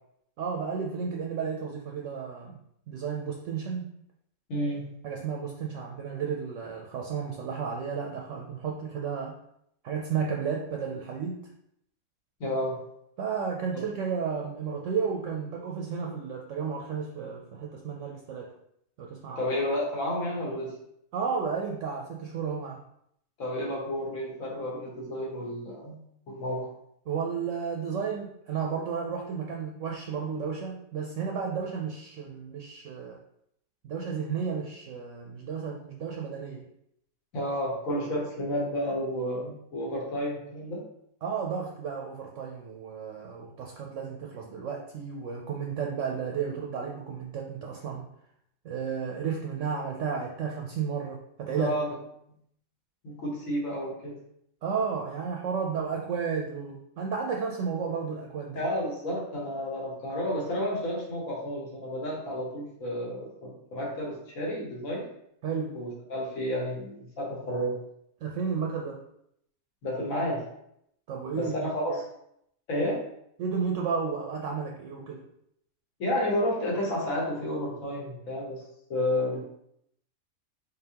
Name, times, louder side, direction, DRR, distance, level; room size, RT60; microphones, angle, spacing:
voice 1, 0.4-2.6 2.9-4.0 5.0-9.4 9.8-11.5 13.2-18.5 19.0-19.4 21.1-22.8 27.1-33.2 33.8-36.6 41.2-48.1 48.6-51.7 54.6-58.6 65.4-65.8 68.2-69.1 71.1-72.0 73.4-75.3, right 6 dB, 70° right, 0 dB, 0.8 m, -33 dB
voice 2, 4.5-4.8 12.4-12.8 13.7-13.8 19.4-20.7 23.4-26.0 26.3-26.7 37.3-40.8 51.6-51.9 53.0-54.1 58.5-65.0 65.7-67.7 69.8-70.4 71.3-71.9 72.7-73.0 76.0-78.6 78.9-79.4, left 1 dB, 65° left, -2 dB, 1.6 m, -31 dB
3.9 x 3.7 x 2.8 m, 0.74 s
omnidirectional pair, 1.5 m